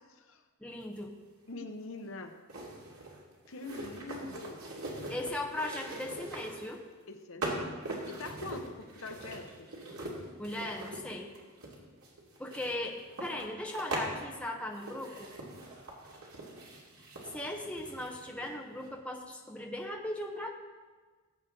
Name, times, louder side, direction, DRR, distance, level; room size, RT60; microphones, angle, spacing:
voice 1, 0.1-0.4 1.5-2.3 3.5-4.6 7.1-9.7, left 2 dB, 60° left, 6 dB, 0.8 m, -44 dB
voice 2, 0.6-1.1 5.1-6.8 10.4-11.3 12.4-15.3 17.3-20.5, left 1 dB, 5° left, 0 dB, 1.0 m, -38 dB
sound 1, 1.0-1.1 2.5-6.8 7.4-14.1 14.7-18.5 18.8-18.9, right 2 dB, 80° right, 2.6 m, -42 dB
18.5 x 8.0 x 3.8 m, 1.4 s
head